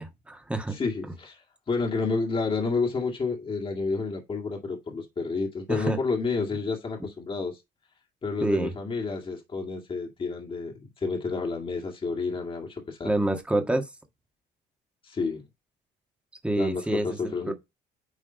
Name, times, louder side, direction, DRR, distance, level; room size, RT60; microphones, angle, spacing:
voice 1, 0.0-0.7 5.7-6.0 8.4-8.7 13.0-13.9 16.4-17.5, right 1 dB, 5° right, 1.5 m, -27 dB
voice 2, 0.7-7.6 8.2-13.1 15.0-15.5 16.6-17.5, left 4 dB, 30° left, 2.1 m, -30 dB
10.0 x 3.5 x 4.0 m
cardioid pair, 110°, 17 cm